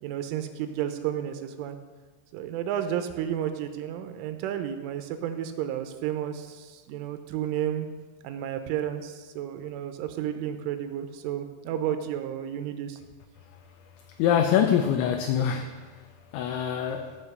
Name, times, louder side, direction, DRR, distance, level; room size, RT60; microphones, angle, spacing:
voice 1, 0.0-1.8 2.3-7.9 8.2-13.0, right 10 dB, 80° right, 8 dB, 3.2 m, -32 dB
voice 2, 14.2-15.9 16.3-17.2, left 8 dB, 80° left, 5 dB, 2.9 m, -24 dB
15.5 x 5.3 x 6.7 m, 1.4 s
omnidirectional pair, 5.7 m